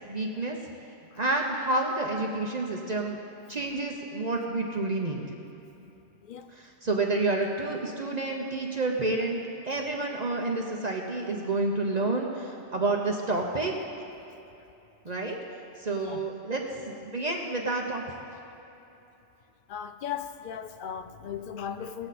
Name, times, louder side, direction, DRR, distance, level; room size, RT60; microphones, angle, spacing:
voice 1, 0.1-0.6 1.2-3.2 3.5-5.2 6.5-9.4 9.6-13.7 15.0-15.4 15.8-16.6 17.0-18.0, right 2 dB, 40° right, 0 dB, 0.9 m, -29 dB
voice 2, 19.7-22.1, left 8 dB, 60° left, 10 dB, 0.6 m, -37 dB
18.5 x 7.8 x 4.1 m, 2.9 s
omnidirectional pair, 1.2 m